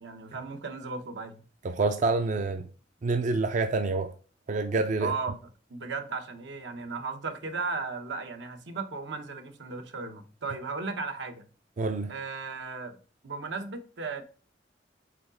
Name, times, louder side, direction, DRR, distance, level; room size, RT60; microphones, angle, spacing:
voice 1, 0.0-1.4 5.0-5.4 5.7-11.5 12.1-13.0 13.2-14.2, right 4 dB, 80° right, 0.9 m, -36 dB
voice 2, 1.6-2.7 3.0-4.1 4.5-5.1 11.8-12.1, right 3 dB, 45° right, 0.4 m, -27 dB
5.0 x 3.9 x 4.9 m
head